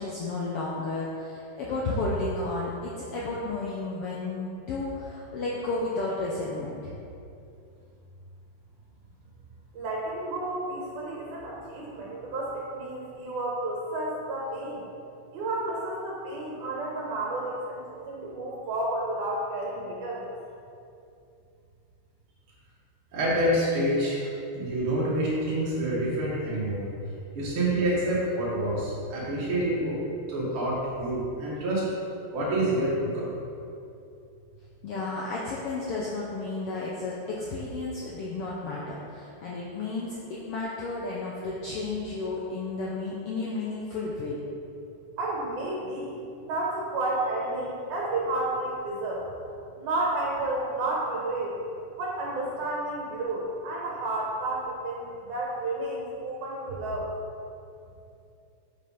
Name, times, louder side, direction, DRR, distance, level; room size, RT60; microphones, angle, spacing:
voice 1, 0.0-7.0 34.8-44.4, left 3 dB, 75° left, -5 dB, 1.3 m, -32 dB
voice 2, 9.7-14.8 15.3-20.3 45.2-49.2 49.8-51.6 52.0-57.1, right 2 dB, 85° right, -4 dB, 2.5 m, -31 dB
voice 3, 23.1-24.3 24.5-26.8 27.3-30.0 30.3-31.8 32.3-33.4, right 1 dB, 50° right, -8 dB, 2.3 m, -27 dB
6.1 x 5.2 x 5.5 m, 2.6 s
omnidirectional pair, 3.5 m